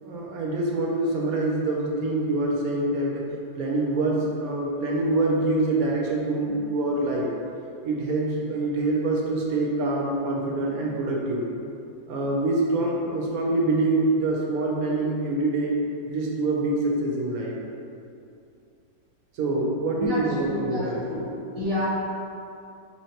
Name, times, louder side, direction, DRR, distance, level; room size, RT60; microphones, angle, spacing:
voice 1, 0.0-3.2 3.6-7.3 7.8-11.4 12.1-15.7 16.1-17.6 19.3-21.1, right 2 dB, 75° right, -2 dB, 1.0 m, -25 dB
voice 2, 20.0-21.9, left 1 dB, 40° left, -11 dB, 0.4 m, -30 dB
4.2 x 3.1 x 2.8 m, 2.6 s
omnidirectional pair, 1.7 m